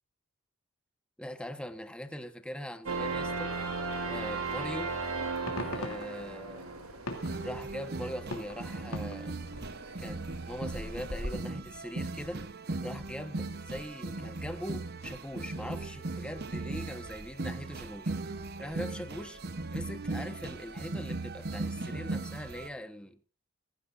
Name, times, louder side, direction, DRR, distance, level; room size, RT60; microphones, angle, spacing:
voice 1, 1.2-3.5 4.0-4.9 5.7-6.7 7.4-9.3 10.0-12.4 12.8-19.4 19.7-23.2, equal, 5° left, 1.2 m, -41 dB
sound 1, 2.9-11.3, right 3 dB, 80° right, 3.2 m, -37 dB
sound 2, 5.2-9.6, left 2 dB, 80° left, 3.0 m, -43 dB
sound 3, 7.1-22.7, right 2 dB, 45° right, 0.9 m, -38 dB
21.5 x 15.5 x 2.6 m
head